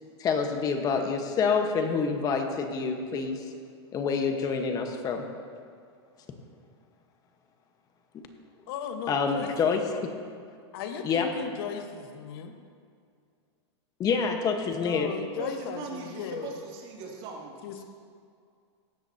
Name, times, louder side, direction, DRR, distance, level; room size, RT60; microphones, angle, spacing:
voice 1, 0.2-3.4 3.9-5.3 9.1-10.1 11.0-11.3 14.0-15.1, left 5 dB, 25° left, 4 dB, 1.3 m, -27 dB
voice 2, 8.7-9.5 10.7-12.5 14.8-16.5 17.6-17.8, left 7 dB, 55° left, 6 dB, 1.4 m, -36 dB
voice 3, 15.4-17.8, right 4 dB, 40° right, -2 dB, 2.7 m, -40 dB
16.5 x 13.0 x 2.9 m, 2.2 s
supercardioid pair, 140°, 15 cm